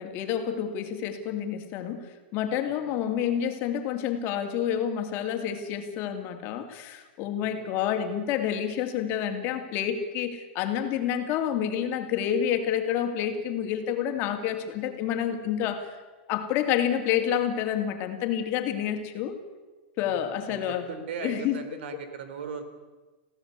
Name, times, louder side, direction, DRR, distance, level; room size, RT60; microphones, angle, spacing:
voice 1, 0.0-2.1 2.3-16.0 16.3-19.4 20.0-20.9 21.2-21.8, left 9 dB, 35° left, 6 dB, 2.5 m, -29 dB
voice 2, 20.1-22.7, right 6 dB, 70° right, 9 dB, 3.6 m, -38 dB
22.5 x 16.0 x 8.2 m, 1.2 s
supercardioid pair, 150°, 6 cm